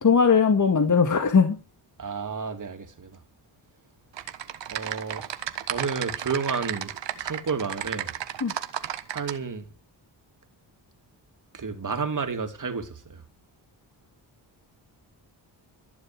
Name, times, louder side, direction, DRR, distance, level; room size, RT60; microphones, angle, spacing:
voice 1, 0.0-1.6 8.4-8.5, left 5 dB, 40° left, 1.9 m, -19 dB
voice 2, 2.0-3.2 4.7-5.3 5.7-8.1 9.1-9.7 11.5-13.2, right 5 dB, 45° right, 3.0 m, -31 dB
Typing, 4.1-9.4, right 10 dB, 75° right, 1.4 m, -33 dB
14.5 x 7.3 x 7.7 m
cardioid pair, 60°, 44 cm